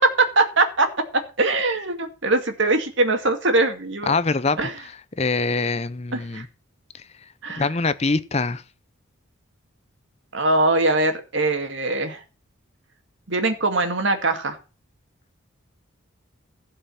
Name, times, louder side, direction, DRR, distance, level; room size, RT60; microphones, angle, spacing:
voice 1, 0.0-4.1 4.6-4.8 6.1-6.4 7.4-7.7 10.3-12.2 13.3-14.6, right 2 dB, 60° right, 2.2 m, -22 dB
voice 2, 4.1-4.6 5.2-6.5 7.6-8.6, left 3 dB, 30° left, 0.6 m, -23 dB
16.0 x 5.6 x 7.1 m
head